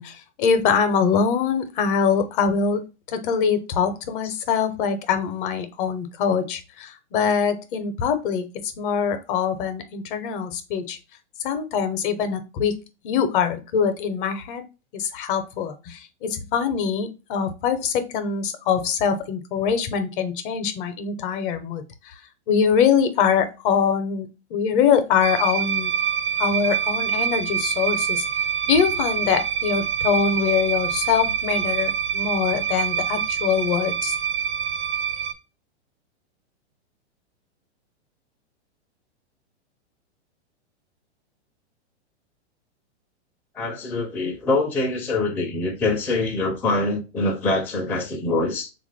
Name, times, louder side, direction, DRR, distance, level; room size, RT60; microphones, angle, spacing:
voice 1, 0.0-2.8 3.1-8.5 8.8-11.0 11.4-12.7 13.0-14.6 14.9-21.8 22.5-25.9 26.4-28.2 28.7-34.1, left 7 dB, 50° left, 0.7 m, -23 dB
sound 1, 25.2-35.3, right 8 dB, 60° right, 0.6 m, -25 dB
voice 2, 43.5-48.7, left 2 dB, 5° left, 0.4 m, -24 dB
3.5 x 2.5 x 3.3 m
hypercardioid pair, 125°, 34 cm